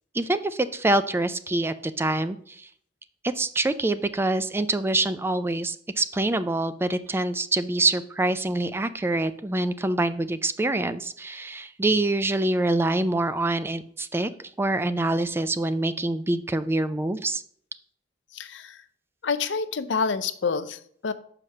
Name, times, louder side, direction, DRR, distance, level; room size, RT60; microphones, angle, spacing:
voice 1, 0.1-2.7 3.2-14.3 14.6-17.4, right 2 dB, 15° right, 12 dB, 0.3 m, -25 dB
voice 2, 18.3-18.8 19.2-21.1, left 5 dB, 75° left, 13 dB, 0.6 m, -28 dB
5.8 x 4.9 x 6.4 m, 0.62 s
head